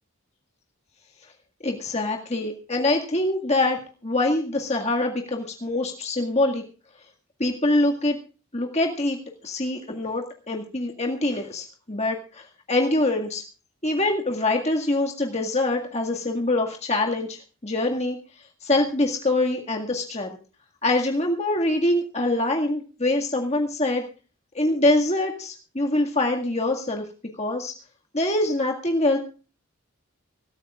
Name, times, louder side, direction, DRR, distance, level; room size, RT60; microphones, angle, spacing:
voice 1, 1.6-6.6 7.4-8.2 8.5-13.4 13.8-20.4 20.8-24.0 24.5-27.0 27.4-27.7 28.1-29.2, left 2 dB, 30° left, 1 dB, 1.9 m, -24 dB
24.5 x 14.5 x 2.4 m, 0.36 s
head